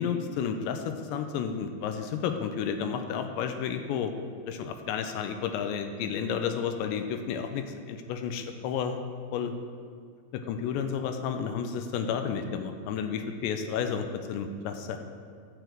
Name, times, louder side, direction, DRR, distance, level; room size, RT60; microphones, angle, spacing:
voice 1, 0.0-4.1 4.5-9.0 9.3-9.5 10.3-15.0, left 7 dB, 85° left, 7 dB, 2.6 m, -31 dB
14.0 x 7.0 x 4.5 m, 2.1 s
omnidirectional pair, 5.6 m